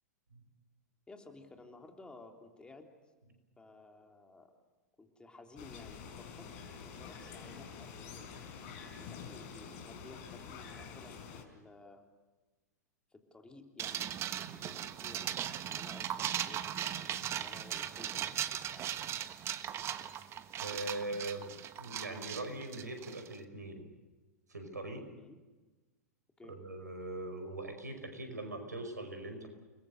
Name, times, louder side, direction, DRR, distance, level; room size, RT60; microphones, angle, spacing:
voice 1, 1.1-2.9 3.6-4.5 5.0-6.5 6.8-8.4 9.0-12.1 13.1-18.9 25.1-25.4 26.4-26.6, left 2 dB, 10° left, 3 dB, 3.4 m, -55 dB
sound 1, 5.6-11.4, left 6 dB, 50° left, 4.8 m, -47 dB
sound 2, 13.8-23.3, right 10 dB, 30° right, 1.4 m, -38 dB
voice 2, 20.6-21.5 21.8-23.8 24.5-25.1 26.5-29.5, right 2 dB, 85° right, 7 dB, 5.2 m, -41 dB
30.0 x 21.0 x 6.6 m, 1.2 s
figure-of-eight pair, 100°, 9 cm